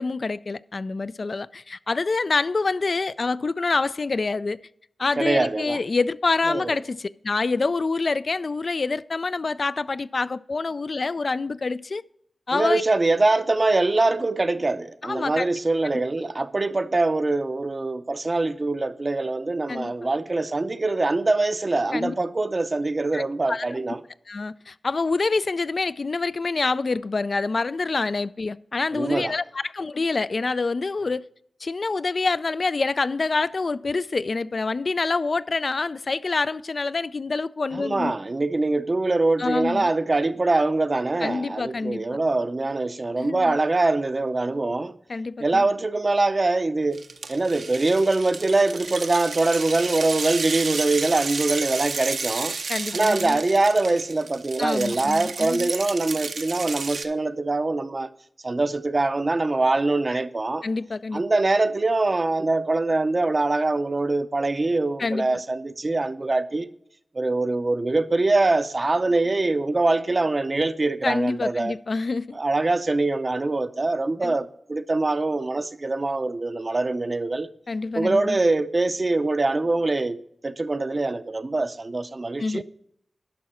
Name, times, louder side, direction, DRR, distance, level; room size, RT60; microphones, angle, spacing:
voice 1, 0.0-4.6 5.0-12.0 12.5-12.8 15.0-15.5 19.7-19.9 21.9-22.1 23.1-23.7 24.3-31.2 31.6-38.1 39.4-39.9 41.2-42.0 43.2-43.6 45.1-45.7 52.7-53.4 54.6-55.7 60.6-61.2 65.0-65.4 71.0-72.4 74.2-74.3 77.7-78.4 82.4-82.6, left 3 dB, 50° left, 0.3 m, -26 dB
voice 2, 5.2-5.8 6.5-6.8 12.5-24.0 28.9-29.3 37.7-44.9 45.4-47.0 47.3-52.6 52.9-58.1 58.4-60.6 61.1-66.7 67.1-71.8 72.3-77.5 77.9-82.6, right 2 dB, 35° right, 0.5 m, -23 dB
sound 1, 46.9-57.1, right 4 dB, 80° right, 0.7 m, -32 dB
11.0 x 6.0 x 4.3 m
wide cardioid pair, 80°, 0 cm